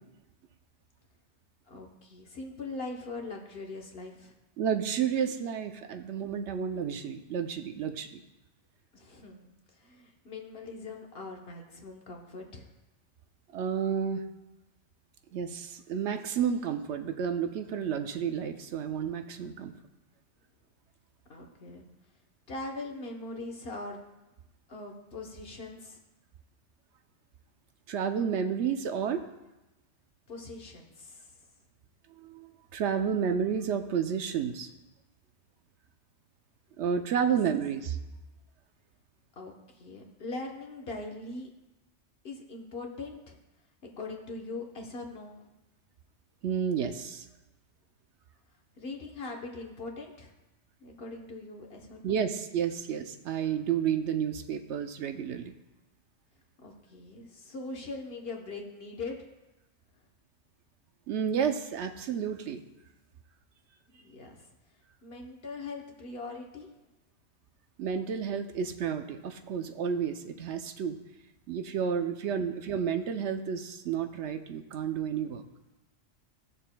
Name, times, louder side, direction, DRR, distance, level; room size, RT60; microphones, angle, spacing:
voice 1, 1.7-4.3 8.9-9.5 9.8-12.7 21.3-21.8 22.5-24.0 24.7-26.0 30.3-31.3 37.2-37.3 39.4-41.5 42.2-43.4 43.8-45.4 48.8-50.3 50.8-52.2 56.6-59.2 64.0-64.5 65.0-66.7 72.3-72.4, left 3 dB, 60° left, 1 dB, 1.2 m, -41 dB
voice 2, 4.6-8.2 13.5-14.2 15.3-19.7 27.9-29.3 32.2-34.7 36.8-38.0 46.4-47.3 52.0-55.5 61.1-62.6 67.8-71.0 71.5-75.4, right 7 dB, 75° right, 7 dB, 0.9 m, -31 dB
16.0 x 6.7 x 2.2 m, 1.0 s
omnidirectional pair, 1.2 m